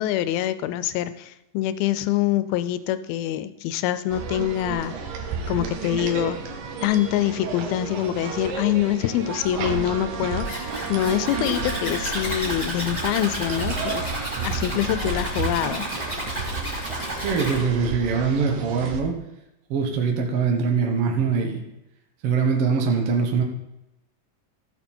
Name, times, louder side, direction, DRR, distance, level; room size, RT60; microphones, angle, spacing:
voice 1, 0.0-4.9 5.5-6.4 6.8-14.0 14.4-15.8, left 12 dB, 85° left, 13 dB, 2.5 m, -25 dB
sound 1, 4.1-19.0, right 5 dB, 70° right, 2.7 m, -32 dB
Trumpet, 9.9-12.4, right 8 dB, 85° right, 1.7 m, -37 dB
Zipper (clothing), 10.4-17.6, equal, 10° left, 3.7 m, -32 dB
voice 2, 17.2-19.1 19.7-21.6 22.2-23.4, right 5 dB, 55° right, 2 dB, 1.7 m, -23 dB
14.5 x 6.6 x 4.4 m, 0.88 s
omnidirectional pair, 4.3 m